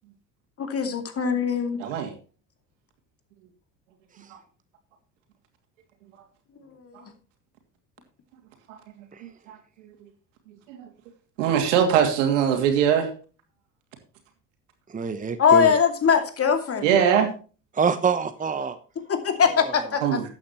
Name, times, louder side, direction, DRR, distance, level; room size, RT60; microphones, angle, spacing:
voice 1, 0.6-1.8 6.6-7.0 15.4-16.9 19.0-20.2, left 7 dB, 40° left, 6 dB, 2.6 m, -22 dB
voice 2, 1.8-2.1 8.7-8.8 9.2-9.6 10.7-10.9 11.4-13.1 16.8-17.3 20.0-20.2, right 8 dB, 90° right, 4 dB, 2.8 m, -21 dB
voice 3, 14.9-15.7 17.7-18.8 19.5-19.7, right 5 dB, 20° right, 10 dB, 1.1 m, -25 dB
13.0 x 9.1 x 3.1 m, 0.36 s
supercardioid pair, 80°, 36 cm